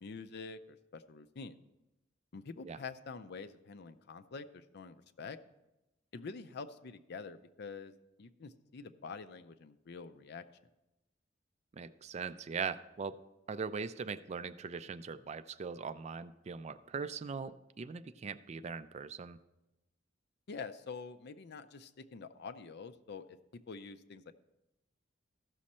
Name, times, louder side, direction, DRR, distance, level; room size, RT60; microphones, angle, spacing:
voice 1, 0.0-1.6 2.3-5.4 6.1-7.9 8.2-10.4 20.5-23.4 23.7-24.3, left 4 dB, 60° left, 10 dB, 0.5 m, -46 dB
voice 2, 11.7-13.2 13.5-19.4, right 5 dB, 35° right, 13 dB, 0.4 m, -40 dB
14.5 x 6.3 x 4.3 m, 0.96 s
head